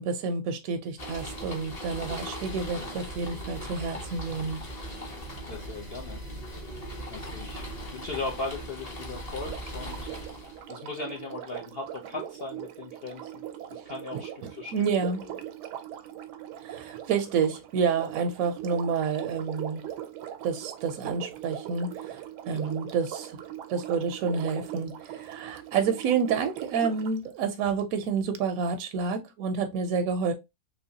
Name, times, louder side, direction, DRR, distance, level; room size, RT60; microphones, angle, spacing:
voice 1, 0.0-4.6 14.7-15.2 16.6-19.8 20.4-23.4 23.7-30.3, right 5 dB, 70° right, 0.9 m, -29 dB
sound 1, 1.0-10.6, equal, 30° left, 0.7 m, -39 dB
voice 2, 5.5-6.2 7.1-7.6 7.9-10.1 10.7-13.4 13.7-14.7 15.2-15.3 22.5-22.8, left 3 dB, 65° left, 0.5 m, -38 dB
Sink (filling or washing), 9.4-27.2 28.3-28.4, right 11 dB, 85° right, 1.2 m, -40 dB
3.1 x 2.9 x 2.7 m
omnidirectional pair, 1.7 m